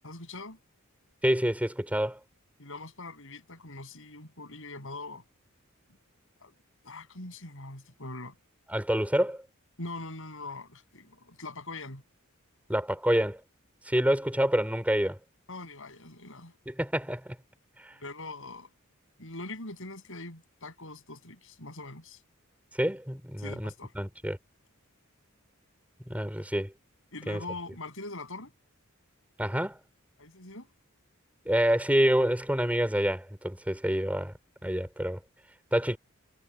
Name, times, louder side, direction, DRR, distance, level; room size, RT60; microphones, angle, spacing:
voice 1, 0.0-0.6 2.6-5.2 6.4-6.5 6.8-8.3 9.8-12.0 15.5-16.5 18.0-18.7 19.2-22.2 23.4-23.9 27.1-28.5 30.2-30.7, left 2 dB, 65° left, 7.7 m, -42 dB
voice 2, 1.2-2.2 8.7-9.4 12.7-13.4 13.9-15.2 16.7-17.4 17.8-17.9 22.8-24.4 26.1-26.7 27.3-27.4 29.4-29.8 31.5-34.3 34.6-35.2 35.7-36.0, equal, 5° right, 5.4 m, -27 dB
head